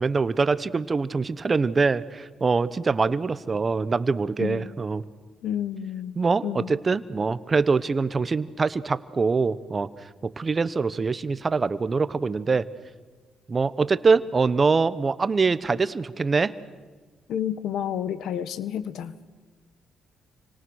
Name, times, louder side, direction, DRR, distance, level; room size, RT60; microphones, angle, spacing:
voice 1, 0.0-5.0 6.2-9.9 10.2-12.6 13.5-16.5, right 4 dB, 30° right, 15 dB, 1.1 m, -24 dB
voice 2, 4.4-4.7 5.4-6.8 17.3-19.1, left 9 dB, 75° left, 14 dB, 1.4 m, -30 dB
29.5 x 25.0 x 6.5 m, 1.4 s
cardioid pair, 90°, 0 cm